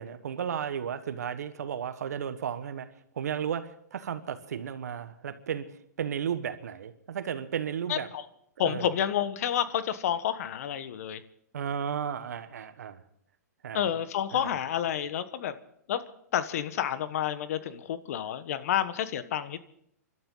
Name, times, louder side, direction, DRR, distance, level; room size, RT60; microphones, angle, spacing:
voice 1, 0.0-2.9 3.1-8.1 8.6-8.9 11.5-13.0 13.6-13.9 14.3-14.5, right 8 dB, 75° right, 11 dB, 1.4 m, -34 dB
voice 2, 7.9-8.2 8.6-11.2 13.7-15.5 15.9-16.0 16.3-19.6, left 10 dB, 60° left, 13 dB, 1.2 m, -29 dB
29.0 x 12.5 x 3.9 m, 0.69 s
hypercardioid pair, 125°, 9 cm